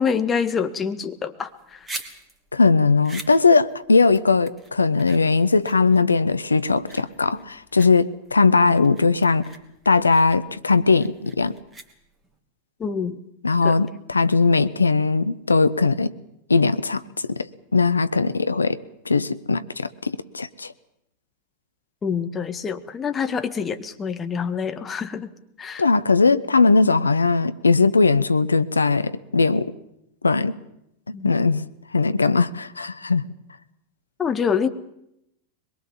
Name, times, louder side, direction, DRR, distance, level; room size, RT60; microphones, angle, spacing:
voice 1, 0.0-1.8 12.8-13.2 13.6-13.7 22.0-25.3 25.6-25.8 31.1-31.3 34.2-34.7, left 6 dB, 20° left, 8 dB, 1.7 m, -26 dB
sound 1, 1.5-12.4, right 2 dB, 10° right, 3.0 m, -43 dB
voice 2, 2.5-9.5 9.9-11.6 13.4-16.1 16.5-18.8 19.1-20.7 25.8-29.7 30.2-30.6 31.1-31.6 31.9-33.2, left 4 dB, 80° left, 14 dB, 0.8 m, -19 dB
23.0 x 22.0 x 7.3 m, 0.81 s
figure-of-eight pair, 90°, 0 cm